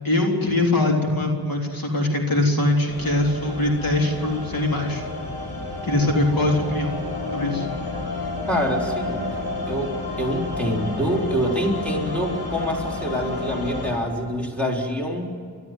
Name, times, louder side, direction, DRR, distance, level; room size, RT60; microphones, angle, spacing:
voice 1, 0.0-5.0 5.8-7.0 7.3-7.7, left 2 dB, 60° left, 0 dB, 3.7 m, -22 dB
sound 1, 2.9-13.9, left 3 dB, 85° left, 6.5 m, -30 dB
voice 2, 8.5-9.3 9.7-15.3, equal, 5° left, -1 dB, 4.1 m, -26 dB
30.0 x 13.0 x 9.3 m, 2.1 s
wide cardioid pair, 70°, 39 cm